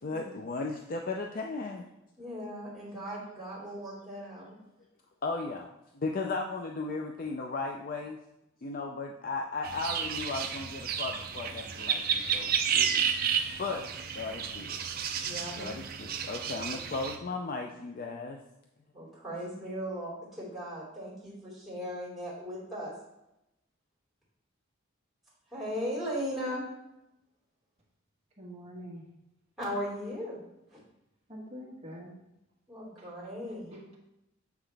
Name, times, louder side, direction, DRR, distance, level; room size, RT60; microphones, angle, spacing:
voice 1, 0.0-1.8 5.2-5.7 5.9-8.2 8.6-13.0 13.6-13.8 14.1-14.8 15.6-18.4, left 3 dB, 40° left, 2 dB, 0.4 m, -36 dB
voice 2, 2.2-4.6 15.2-15.8 18.9-22.9 25.5-26.6 29.6-30.4 30.7-30.8 32.7-33.7, equal, ahead, -8 dB, 2.8 m, -37 dB
sound 1, 9.6-17.2, right 7 dB, 45° right, 0.5 m, -32 dB
voice 3, 28.4-29.0 31.3-32.1 33.0-33.3 33.7-34.0, equal, 30° right, -4 dB, 1.5 m, -45 dB
7.2 x 5.8 x 3.4 m, 0.88 s
head